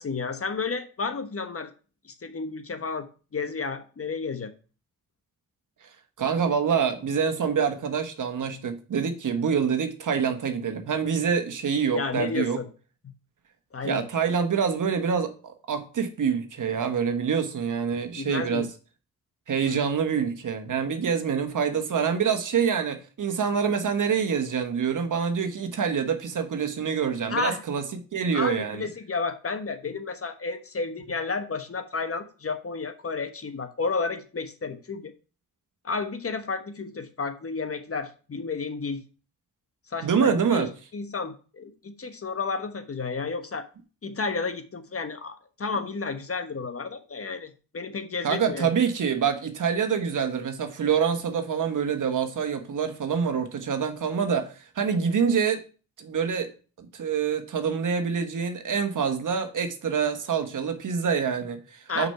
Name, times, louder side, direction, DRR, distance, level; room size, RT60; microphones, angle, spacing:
voice 1, 0.0-1.7 2.0-4.5 11.9-12.7 13.7-14.1 18.1-18.7 19.6-19.8 27.3-27.6 28.3-35.1 35.8-39.0 39.9-40.7 40.9-43.7 44.0-48.7 61.9-62.1, left 4 dB, 40° left, 1.2 m, -32 dB
voice 2, 6.2-12.6 13.8-18.7 19.5-27.8 28.1-28.9 40.0-40.7 48.2-55.6 56.0-56.5 56.8-62.1, right 6 dB, 65° right, 1.3 m, -26 dB
6.1 x 5.3 x 5.6 m
supercardioid pair, 50°, 34 cm